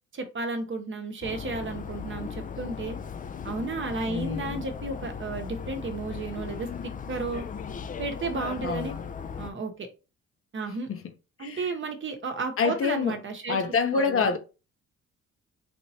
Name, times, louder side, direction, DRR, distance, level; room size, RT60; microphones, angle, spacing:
voice 1, 0.1-3.0 3.4-7.5 8.0-8.9 9.4-9.9 10.5-10.9 11.4-13.6 13.9-14.3, right 3 dB, 40° right, 0.9 m, -33 dB
sound 1, 1.2-9.5, left 6 dB, 30° left, 0.4 m, -37 dB
voice 2, 4.0-4.6 8.6-9.0 10.9-11.0 11.4-11.7 12.6-13.2 13.5-14.4, left 5 dB, 45° left, 0.7 m, -27 dB
3.4 x 3.0 x 2.8 m
cardioid pair, 90°, 30 cm